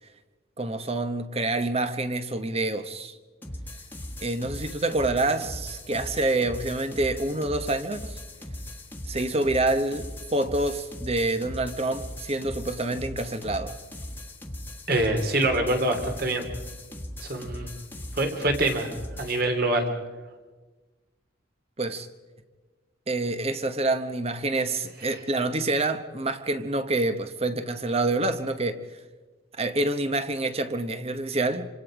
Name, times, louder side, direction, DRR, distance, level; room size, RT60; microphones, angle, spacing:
voice 1, 0.6-3.2 4.2-8.2 9.1-13.7 21.8-22.1 23.1-28.8 29.6-31.7, right 2 dB, 30° right, 1.1 m, -27 dB
sound 1, 3.4-19.4, left 1 dB, 10° left, 1.5 m, -39 dB
voice 2, 14.9-16.4 17.2-17.7 18.1-18.9 19.2-19.9, right 2 dB, 50° right, 2.8 m, -25 dB
27.0 x 26.0 x 5.0 m
head